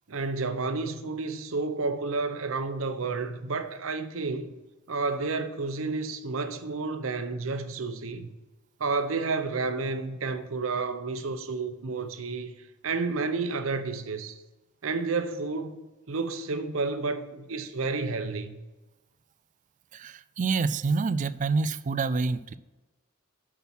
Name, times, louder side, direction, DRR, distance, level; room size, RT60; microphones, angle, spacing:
voice 1, 0.1-4.5 4.9-8.3 8.8-12.5 12.8-14.4 14.8-18.6, right 3 dB, 75° right, 0.8 m, -31 dB
voice 2, 19.9-22.6, right 4 dB, 40° right, 0.3 m, -27 dB
7.0 x 6.0 x 6.0 m
head